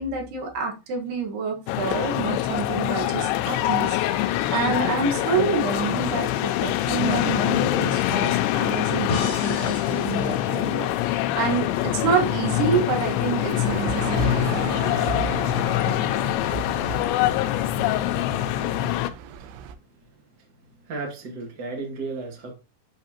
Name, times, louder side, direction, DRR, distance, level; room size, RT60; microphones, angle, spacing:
voice 1, 0.0-14.4, right 5 dB, 70° right, 3.4 m, -28 dB
sound 1, 1.7-19.1, left 14 dB, 90° left, 2.9 m, -24 dB
sound 2, 9.1-12.2, left 1 dB, 30° left, 2.9 m, -35 dB
sound 3, 13.4-19.7, right 8 dB, 90° right, 2.9 m, -34 dB
voice 2, 20.6-22.5, right 3 dB, 40° right, 1.6 m, -34 dB
8.7 x 5.8 x 2.9 m
omnidirectional pair, 5.0 m